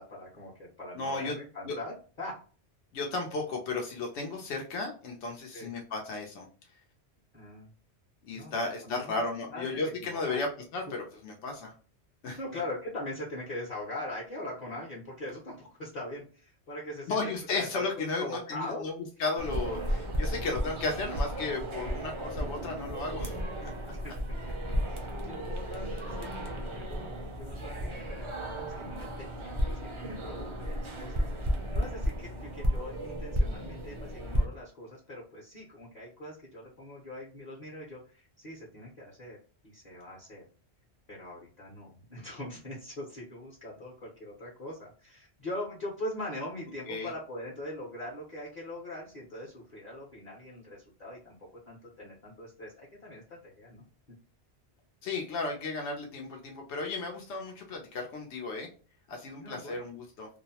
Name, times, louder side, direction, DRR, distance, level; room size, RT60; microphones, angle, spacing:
voice 1, 0.0-2.4 5.5-5.7 7.3-7.7 8.3-8.5 8.8-9.2 9.5-10.4 10.9-11.0 12.4-17.2 17.5-17.9 18.2-18.9 23.9-24.2 24.9-27.0 27.3-28.1 28.5-39.4 39.6-40.4 41.1-53.9 59.4-59.8, left 1 dB, 45° left, -4 dB, 0.8 m, -42 dB
voice 2, 0.9-1.3 1.7-1.8 2.9-6.5 8.2-10.5 10.7-11.7 12.2-12.4 17.1-23.4 23.6-23.7 46.9-47.1 55.0-58.7 59.1-60.3, left 3 dB, 85° left, 1 dB, 0.9 m, -34 dB
sound 1, 19.4-34.4, equal, 40° right, 0.4 m, -33 dB
2.6 x 2.0 x 2.7 m, 0.39 s
omnidirectional pair, 1.1 m